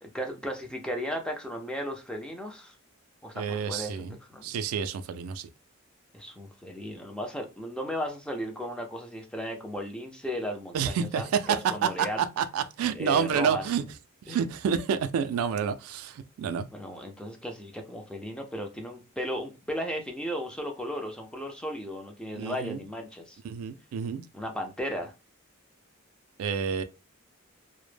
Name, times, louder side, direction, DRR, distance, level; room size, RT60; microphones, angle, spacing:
voice 1, 0.0-2.8 3.2-4.4 6.1-12.2 12.9-13.6 14.3-14.4 16.7-23.4 24.3-25.1, equal, 5° left, 0.4 m, -35 dB
voice 2, 3.4-4.2 4.4-5.5 10.7-13.8 14.3-16.7 22.3-22.8 23.4-24.2 26.4-26.8, right 7 dB, 90° right, 0.3 m, -29 dB
2.0 x 2.0 x 3.1 m
head